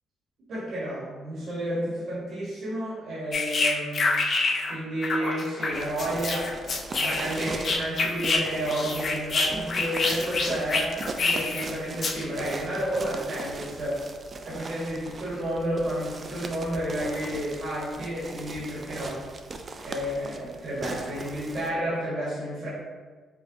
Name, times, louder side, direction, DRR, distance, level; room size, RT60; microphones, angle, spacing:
voice 1, 0.5-4.1 4.6-14.0 14.4-19.2 19.8-22.7, right 1 dB, 60° right, -7 dB, 1.2 m, -31 dB
sound 1, 3.3-4.8 5.0-8.4 8.7-11.6 12.0-12.2, left 3 dB, 50° left, 0.5 m, -26 dB
sound 2, 5.7-21.7, right 3 dB, 35° right, 0.3 m, -40 dB
4.8 x 2.3 x 2.6 m, 1.4 s
cardioid pair, 90°, 0 cm